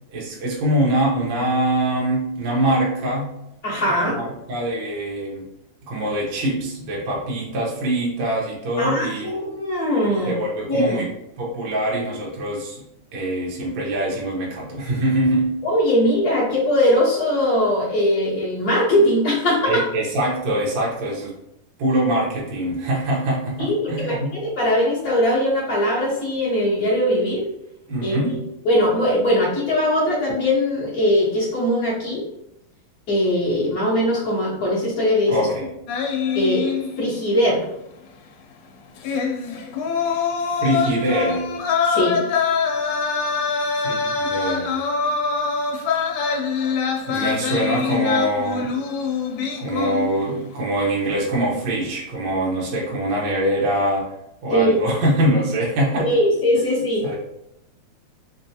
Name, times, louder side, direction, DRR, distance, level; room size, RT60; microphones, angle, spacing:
voice 1, 0.1-3.3 4.0-5.5 5.9-9.3 10.1-11.1 11.4-12.8 13.1-15.5 19.6-21.3 21.8-24.3 27.9-28.4 35.3-35.7 40.1-40.2 40.6-41.5 43.8-44.8 47.1-48.7 49.6-54.1 54.4-56.1 57.0-57.2, right 1 dB, 90° right, -3 dB, 1.0 m, -23 dB
voice 2, 3.6-4.2 8.8-10.3 10.7-11.0 15.6-19.8 23.6-27.5 28.0-28.1 28.6-32.2 33.1-35.5 36.3-36.7 37.0-37.6 41.9-42.2 54.5-54.8 56.0-57.0, left 1 dB, 55° left, -8 dB, 1.0 m, -20 dB
sound 1, 35.9-37.3 37.6-37.7 39.0-50.4 50.7-51.0, left 5 dB, 80° left, 2.0 m, -24 dB
4.9 x 2.3 x 2.8 m, 0.83 s
omnidirectional pair, 3.6 m